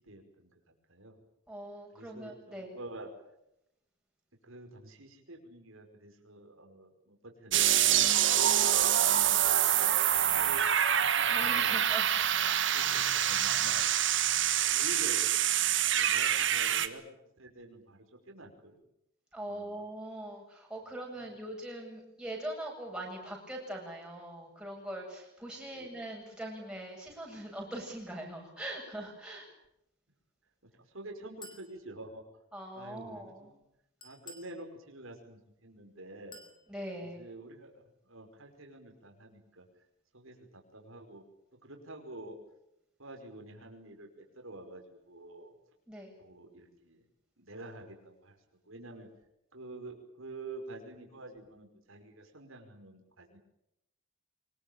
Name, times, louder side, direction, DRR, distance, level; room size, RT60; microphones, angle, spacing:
voice 1, 0.0-0.5 0.9-1.2 1.9-3.1 4.4-8.1 9.5-10.6 10.9-11.8 12.7-13.9 14.7-15.2 15.9-17.0 17.4-18.8 19.5-19.8 21.2-21.4 25.6-25.9 30.9-32.2 32.7-33.6 34.0-36.4 37.0-37.7 38.1-39.7 40.1-41.2 41.6-42.4 43.0-45.5 46.2-47.0 47.4-48.4 48.7-49.1 49.5-53.4, right 2 dB, 75° right, 3 dB, 5.4 m, -48 dB
voice 2, 1.5-2.8 8.4-9.7 11.3-12.6 19.3-29.5 32.5-33.5 36.7-37.2 45.9-46.1, right 1 dB, 5° right, -1 dB, 7.9 m, -42 dB
sound 1, 7.5-16.9, right 10 dB, 60° right, 1.6 m, -26 dB
Chink clink, 31.4-31.7 34.0-34.6 36.3-36.6, left 3 dB, 20° left, 5.5 m, -50 dB
25.0 x 21.5 x 8.9 m, 0.82 s
head